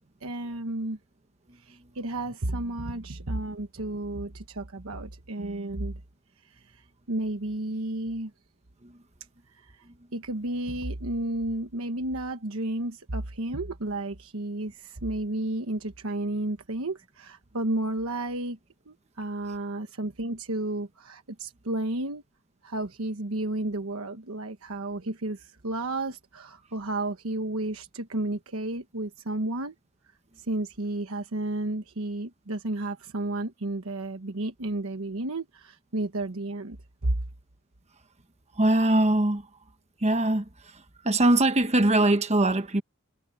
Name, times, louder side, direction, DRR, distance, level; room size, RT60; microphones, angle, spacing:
voice 1, 0.2-1.0 1.6-6.0 6.4-8.3 9.5-9.8 10.1-18.6 18.9-22.2 22.6-29.7 30.4-36.8 37.0-37.2, right 2 dB, 75° right, 1.3 m, -32 dB
voice 2, 38.6-39.5 40.0-42.8, right 1 dB, 30° right, 1.2 m, -22 dB
head